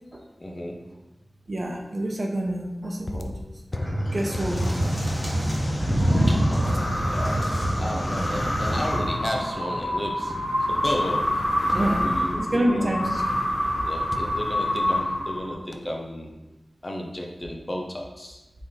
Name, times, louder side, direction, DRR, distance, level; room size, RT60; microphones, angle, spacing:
voice 1, 0.4-0.9 4.6-5.1 6.3-10.4 10.7-12.9 13.9-16.3 16.8-18.4, left 1 dB, 35° left, 0 dB, 0.8 m, -33 dB
voice 2, 1.5-3.3 4.1-5.1 5.7-5.8 11.7-12.1 12.4-13.2, right 1 dB, 50° right, 1 dB, 0.7 m, -27 dB
sound 1, 3.0-11.0 11.7-12.7 14.1-15.4 15.7-16.1, left 2 dB, 55° left, 0.4 m, -38 dB
sound 2, 3.7-9.0, equal, 5° left, 1.4 m, -25 dB
sound 3, 6.0-15.7, left 1 dB, 90° left, 1.3 m, -27 dB
4.1 x 3.2 x 3.7 m, 1.0 s
cardioid pair, 45°, 0 cm